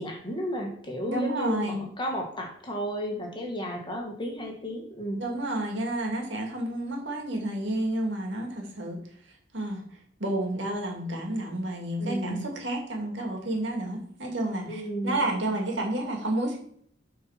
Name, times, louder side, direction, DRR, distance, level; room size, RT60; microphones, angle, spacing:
voice 1, 0.0-5.2 12.0-12.5 14.7-15.2, equal, 25° left, 1 dB, 1.8 m, -33 dB
voice 2, 1.1-1.8 5.2-9.0 9.5-9.8 10.2-16.6, right 1 dB, 70° right, 1 dB, 2.4 m, -30 dB
8.2 x 4.5 x 5.9 m, 0.63 s
head